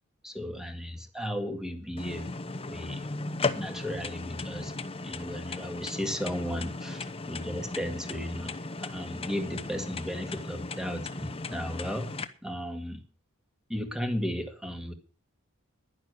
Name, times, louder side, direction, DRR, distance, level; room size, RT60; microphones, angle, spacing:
voice 1, 0.2-2.3 2.7-3.2 3.6-4.7 5.0-8.5 8.8-12.1 12.4-13.0 13.7-14.9, equal, 5° right, 6 dB, 1.9 m, -35 dB
sound 1, 2.0-12.2, left 3 dB, 25° left, 0.9 m, -36 dB
11.5 x 10.5 x 6.5 m, 0.36 s
head